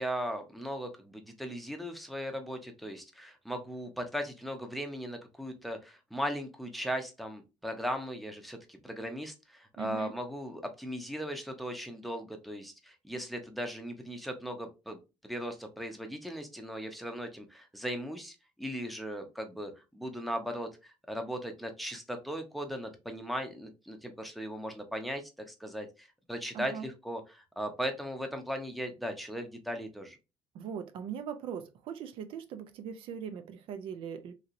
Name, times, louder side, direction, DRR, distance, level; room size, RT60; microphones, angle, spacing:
voice 1, 0.0-15.0 15.2-30.2, equal, ahead, 0.6 m, -38 dB
voice 2, 9.8-10.1 26.5-26.9 30.5-34.3, right 7 dB, 70° right, 0.4 m, -40 dB
2.9 x 2.8 x 2.5 m
cardioid pair, 125°, 10 cm